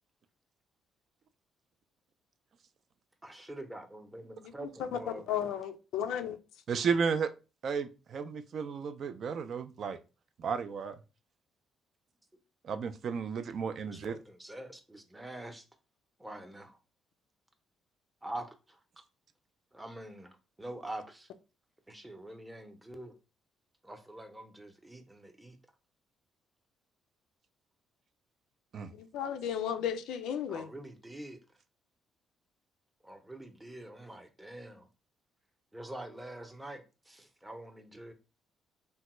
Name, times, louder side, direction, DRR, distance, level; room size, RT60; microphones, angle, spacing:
voice 1, 3.2-5.2 13.9-15.6 16.2-16.8 18.2-18.5 19.7-21.3 21.9-23.1 23.8-25.6 30.5-31.4 33.0-34.9 35.7-38.1, right 1 dB, 10° right, 0.6 m, -45 dB
voice 2, 4.4-5.0 5.3-6.4 29.0-30.7, left 9 dB, 85° left, 0.3 m, -34 dB
voice 3, 6.7-7.3 7.6-10.0 10.4-11.0 12.7-14.2 28.7-28.9, right 6 dB, 55° right, 0.3 m, -33 dB
3.3 x 2.1 x 3.0 m
cardioid pair, 85°, 0 cm